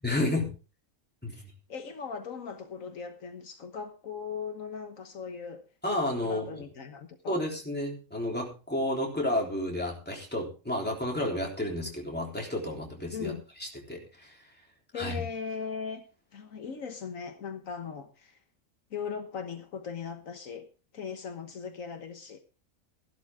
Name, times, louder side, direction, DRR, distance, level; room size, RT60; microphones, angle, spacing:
voice 1, 0.0-0.5 1.2-1.4 5.8-6.5 7.3-13.3 13.6-14.4 14.9-15.1, left 1 dB, 5° left, 3.5 m, -31 dB
voice 2, 1.3-5.6 6.2-7.4 13.1-13.4 14.9-16.0 16.3-18.4 18.9-20.7 20.9-22.4, left 6 dB, 70° left, 1.6 m, -39 dB
14.5 x 11.5 x 3.6 m
omnidirectional pair, 1.4 m